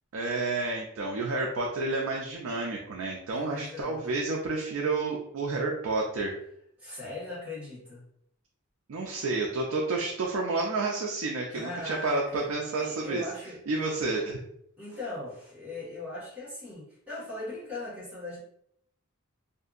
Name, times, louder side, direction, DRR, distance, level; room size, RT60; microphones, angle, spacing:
voice 1, 0.1-6.4 8.9-13.2 13.7-14.4, right 3 dB, 70° right, -1 dB, 0.4 m, -30 dB
voice 2, 3.3-4.0 6.8-8.1 11.5-12.5 12.8-13.6 14.0-14.1 14.8-18.4, left 2 dB, 5° right, -9 dB, 1.4 m, -39 dB
2.7 x 2.5 x 2.4 m, 0.72 s
head